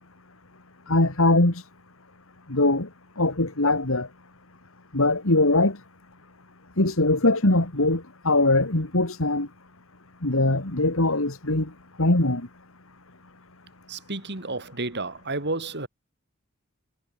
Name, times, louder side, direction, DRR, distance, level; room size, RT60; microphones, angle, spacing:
voice 1, 0.9-1.6 2.5-2.9 3.2-4.1 4.9-5.8 6.8-9.5 10.2-11.7 12.0-12.4, left 2 dB, 70° left, 2.7 m, -21 dB
voice 2, 13.9-15.9, right 2 dB, 55° right, 4.3 m, -31 dB
head